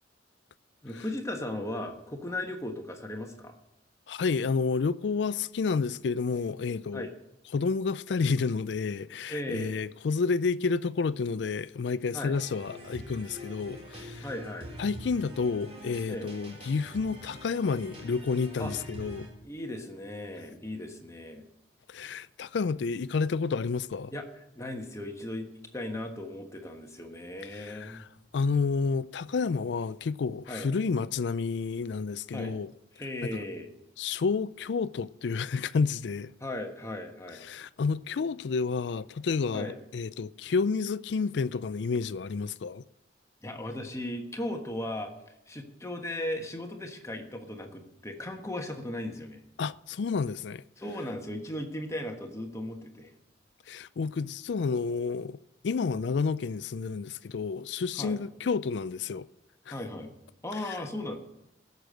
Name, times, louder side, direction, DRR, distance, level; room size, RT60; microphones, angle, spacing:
voice 1, 0.8-3.5 6.9-7.1 9.3-9.7 12.1-12.3 14.2-14.7 16.1-16.3 18.6-18.7 19.4-21.5 24.1-24.2 24.5-28.0 30.5-30.7 32.3-32.5 33.0-33.7 36.4-37.4 39.5-39.7 43.4-45.1 45.5-49.4 50.8-53.1 58.0-58.2 59.7-60.1 60.4-61.2, left 1 dB, 15° left, 1.4 m, -37 dB
voice 2, 4.1-7.1 7.5-14.3 14.8-19.3 21.9-24.1 27.5-28.1 28.3-32.7 33.2-33.4 34.0-36.3 37.4-42.8 49.6-50.6 53.7-55.4 55.6-59.3 59.7-59.8 60.6-60.8, left 4 dB, 70° left, 0.4 m, -30 dB
sound 1, 12.3-19.3, equal, 35° right, 3.7 m, -44 dB
16.5 x 6.8 x 7.7 m
head